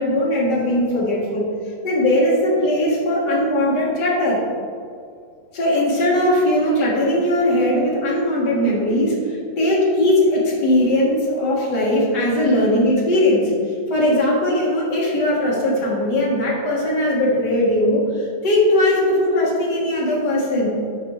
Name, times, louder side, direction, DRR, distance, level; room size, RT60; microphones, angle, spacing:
voice 1, 0.0-1.5 1.8-4.4 5.5-13.5 13.9-20.7, left 1 dB, 60° left, -4 dB, 1.9 m, -19 dB
10.5 x 4.1 x 3.1 m, 2.3 s
omnidirectional pair, 2.1 m